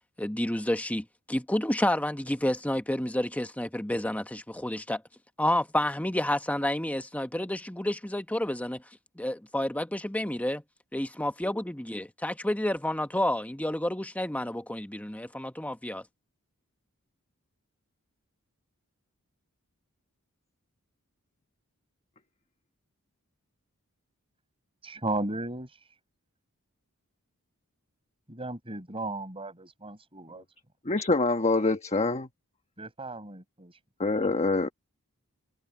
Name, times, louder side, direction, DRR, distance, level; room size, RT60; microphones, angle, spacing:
voice 1, 0.2-5.0 5.4-8.8 9.2-10.6 10.9-16.0, left 1 dB, 5° left, 1.1 m, -30 dB
voice 2, 24.8-26.0 28.3-30.4 32.8-33.8, right 2 dB, 25° right, 5.8 m, -35 dB
voice 3, 30.8-32.3 34.0-34.7, left 3 dB, 30° left, 1.2 m, -25 dB
head